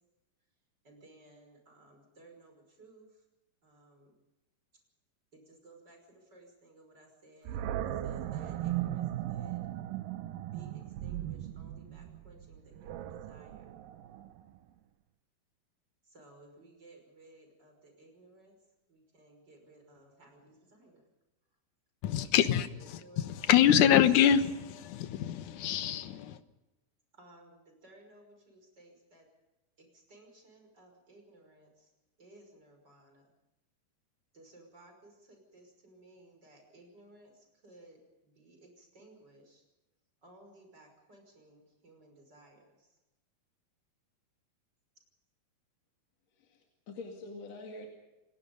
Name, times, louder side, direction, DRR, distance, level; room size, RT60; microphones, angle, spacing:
voice 1, 0.8-3.2 3.6-4.2 5.3-9.6 10.5-13.8 16.0-18.5 18.9-21.0 22.7-23.3 27.1-29.3 29.8-31.9 32.2-33.4 34.3-39.6 40.2-43.0, right 2 dB, 25° right, 3 dB, 6.0 m, -58 dB
Animal, 7.5-14.6, right 13 dB, 75° right, 2.5 m, -37 dB
voice 2, 22.0-26.4, left 10 dB, 65° left, 10 dB, 2.3 m, -25 dB
voice 3, 46.3-47.9, left 2 dB, 50° left, 1 dB, 3.2 m, -45 dB
30.0 x 18.0 x 5.3 m, 1.0 s
omnidirectional pair, 4.3 m